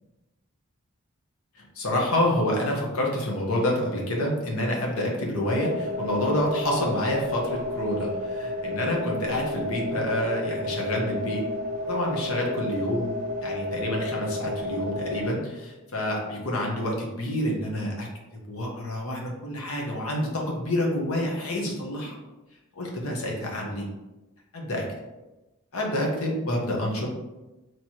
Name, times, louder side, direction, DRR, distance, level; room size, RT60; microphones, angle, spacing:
voice 1, 1.5-11.5 11.8-18.1 18.5-22.1 22.7-23.9 24.5-24.8 25.7-27.1, left 1 dB, 85° left, -1 dB, 1.0 m, -28 dB
sound 1, 5.4-15.3, left 1 dB, 35° right, 0.6 m, -32 dB
4.5 x 3.1 x 2.8 m, 1.1 s
head